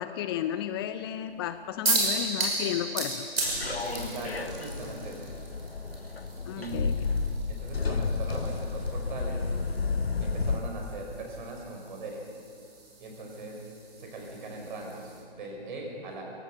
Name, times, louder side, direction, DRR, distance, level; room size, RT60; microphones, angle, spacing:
voice 1, 0.0-3.3 6.5-7.0, left 11 dB, 25° left, 11 dB, 0.5 m, -33 dB
sound 1, 1.8-15.2, right 2 dB, 75° right, 6.1 m, -36 dB
sound 2, 3.4-10.6, left 4 dB, 80° left, 1.3 m, -31 dB
voice 2, 3.7-5.3 6.6-7.0 7.5-9.4 10.2-12.3 13.0-16.2, right 2 dB, 55° right, 1 dB, 5.5 m, -40 dB
22.5 x 17.0 x 7.0 m, 2.4 s
figure-of-eight pair, 120°, 30 cm